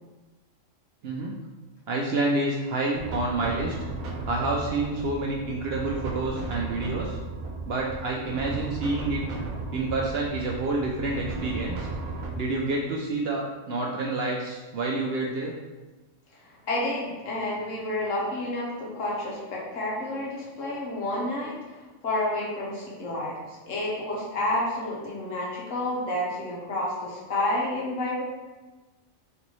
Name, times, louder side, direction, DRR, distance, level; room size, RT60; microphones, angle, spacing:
voice 1, 1.0-1.4 1.9-3.7 4.3-7.2 7.7-9.2 9.7-11.9 12.4-15.5, right 2 dB, 65° right, -2 dB, 0.6 m, -28 dB
sound 1, 2.9-12.3, right 3 dB, 85° right, 1.1 m, -35 dB
voice 2, 16.4-28.2, left 1 dB, 70° left, -5 dB, 1.4 m, -30 dB
4.0 x 3.4 x 3.1 m, 1.2 s
omnidirectional pair, 1.4 m